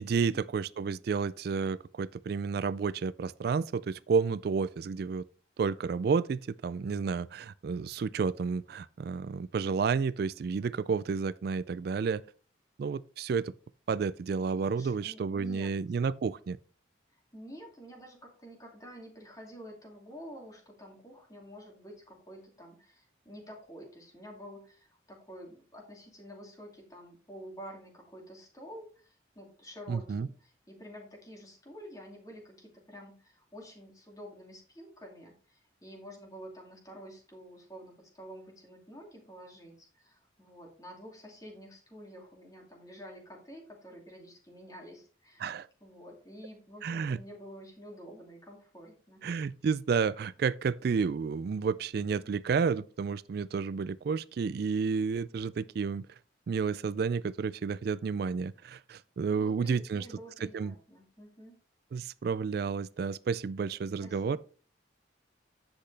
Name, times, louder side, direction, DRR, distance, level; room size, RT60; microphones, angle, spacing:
voice 1, 0.0-5.2 5.6-12.2 12.8-13.5 13.9-16.6 29.9-30.3 45.4-45.7 46.8-47.2 49.2-56.1 56.5-60.1 60.4-60.7 61.9-64.4, right 5 dB, 55° right, 0.3 m, -31 dB
voice 2, 14.7-15.7 17.1-45.4 45.8-49.2 59.2-61.6 64.0-64.4, equal, 20° left, 2.5 m, -49 dB
10.0 x 7.8 x 3.3 m
head